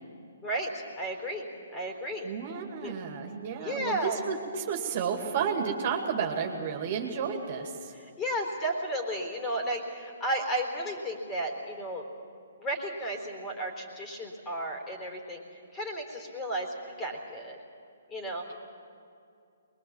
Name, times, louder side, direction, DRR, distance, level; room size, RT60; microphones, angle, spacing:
voice 1, 0.4-2.3 2.8-2.9 3.6-4.2 7.9-12.1 12.6-15.4 15.7-16.7 17.0-17.6 18.1-18.5, right 1 dB, 20° left, 2 dB, 3.8 m, -33 dB
voice 2, 2.2-7.9, right 6 dB, 45° right, 3 dB, 2.4 m, -32 dB
22.5 x 21.5 x 7.3 m, 2.5 s
figure-of-eight pair, 130°, 0 cm